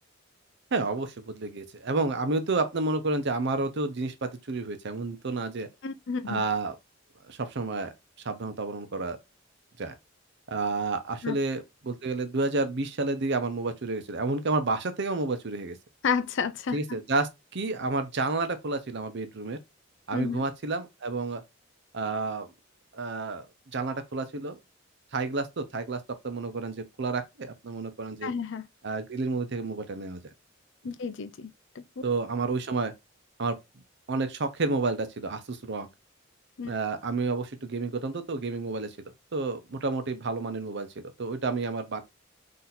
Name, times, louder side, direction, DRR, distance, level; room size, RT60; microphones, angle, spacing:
voice 1, 0.7-5.7 6.3-6.7 7.3-7.9 8.2-9.2 9.8-9.9 10.5-15.8 16.7-19.6 20.1-21.4 21.9-22.5 22.9-23.5 23.7-24.6 25.1-28.3 28.8-30.2 32.0-32.9 33.4-33.6 34.1-35.9 36.7-39.0 39.3-42.0, right 3 dB, 60° right, 0.8 m, -30 dB
voice 2, 5.8-6.4 11.2-11.4 16.0-16.8 20.1-20.4 28.2-28.6 30.8-31.5 31.8-31.9 36.6-36.7, left 5 dB, 65° left, 0.5 m, -31 dB
3.9 x 2.8 x 4.2 m
head